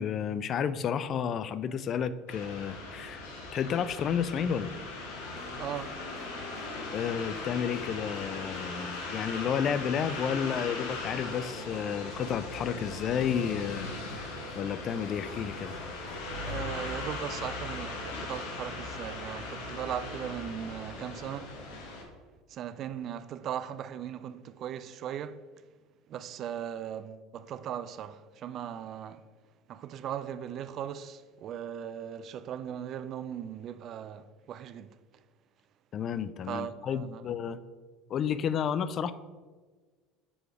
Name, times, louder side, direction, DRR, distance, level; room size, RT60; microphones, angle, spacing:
voice 1, 0.0-3.2 3.5-4.7 6.9-13.9 14.2-14.3 14.6-15.8 35.9-37.6 38.1-39.1, left 8 dB, 45° left, 0.3 m, -31 dB
sound 1, 2.3-22.0, left 3 dB, 80° left, 1.1 m, -39 dB
sound 2, 5.1-17.3, left 1 dB, 15° left, 1.4 m, -48 dB
voice 2, 5.6-6.0 16.5-21.6 22.5-25.4 26.1-29.2 29.7-34.9 36.5-37.3, right 9 dB, 50° right, 0.3 m, -38 dB
6.2 x 3.3 x 4.8 m
hypercardioid pair, 85°, 0 cm